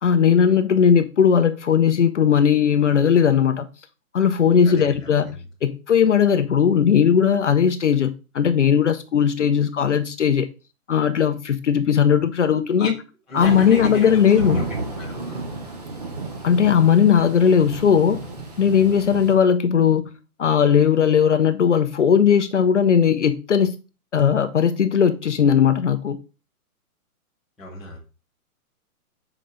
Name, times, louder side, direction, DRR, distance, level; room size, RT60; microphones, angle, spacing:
voice 1, 0.0-3.7 4.1-5.3 5.6-10.5 10.9-12.9 13.3-14.6 16.4-18.2 18.6-20.1 20.4-23.7 24.1-26.2, left 7 dB, 55° left, 0.7 m, -18 dB
voice 2, 4.6-5.4 12.8-12.9 13.3-14.2 14.5-14.6 15.0-15.5 27.6-28.0, left 2 dB, ahead, 1.0 m, -34 dB
Thunder / Rain, 13.4-19.3, right 2 dB, 25° right, 1.0 m, -33 dB
7.5 x 5.0 x 3.9 m
hypercardioid pair, 180°, 44 cm